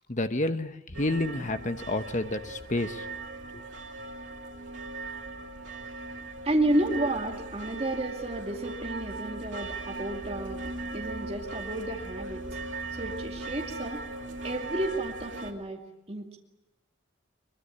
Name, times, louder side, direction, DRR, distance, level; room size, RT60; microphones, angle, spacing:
voice 1, 0.1-3.0 3.5-3.6, left 2 dB, 35° left, 9 dB, 1.0 m, -30 dB
sound 1, 0.9-15.5, right 2 dB, 65° right, 2.7 m, -39 dB
voice 2, 6.4-10.6 10.9-12.5 13.0-14.0 14.4-15.8 16.1-16.4, right 1 dB, 30° right, 0 dB, 2.3 m, -31 dB
22.5 x 22.0 x 10.0 m, 0.97 s
head